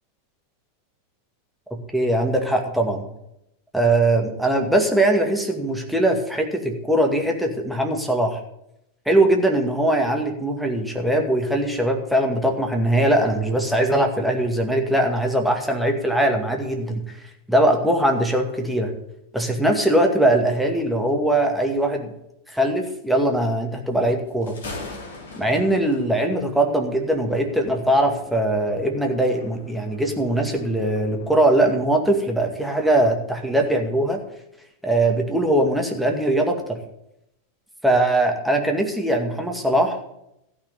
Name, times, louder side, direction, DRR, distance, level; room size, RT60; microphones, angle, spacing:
voice 1, 1.9-3.0 3.7-8.4 9.1-17.0 17.5-18.9 19.3-22.1 22.5-24.6 25.4-34.2 34.8-36.8 37.8-40.0, right 1 dB, ahead, 2 dB, 2.2 m, -21 dB
Thunder, 24.3-31.5, left 3 dB, 60° left, 3.0 m, -42 dB
14.5 x 6.1 x 8.2 m, 0.80 s
figure-of-eight pair, 90°, 0 cm